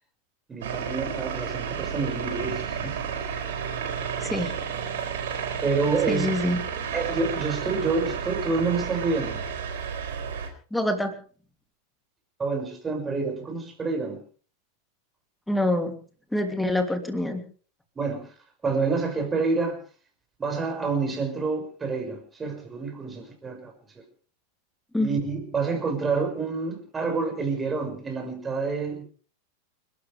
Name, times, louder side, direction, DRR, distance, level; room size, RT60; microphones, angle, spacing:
voice 1, 0.5-3.0 5.6-6.3 6.9-9.4 12.4-14.2 18.0-18.3 18.6-19.8 20.4-24.0 25.0-29.0, right 4 dB, 15° right, 4 dB, 6.3 m, -28 dB
sound 1, 0.6-10.5, right 7 dB, 60° right, 4.4 m, -32 dB
voice 2, 4.2-4.5 6.1-6.6 10.7-11.1 15.5-15.9 16.3-17.4 24.9-25.2, left 1 dB, 5° left, 6 dB, 2.9 m, -25 dB
29.5 x 12.5 x 3.5 m, 0.42 s
figure-of-eight pair, 90°, 0 cm